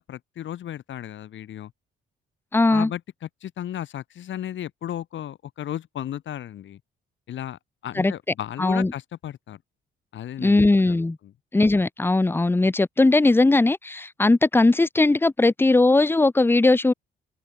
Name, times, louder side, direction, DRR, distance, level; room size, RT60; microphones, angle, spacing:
voice 1, 0.0-1.7 2.7-6.8 7.3-9.6 10.1-11.0, left 11 dB, 70° left, 5.0 m, -35 dB
voice 2, 2.5-2.9 8.0-8.1 8.6-8.9 10.4-11.2 11.5-16.9, left 2 dB, 10° left, 0.8 m, -19 dB
open air
cardioid pair, 90°, 20 cm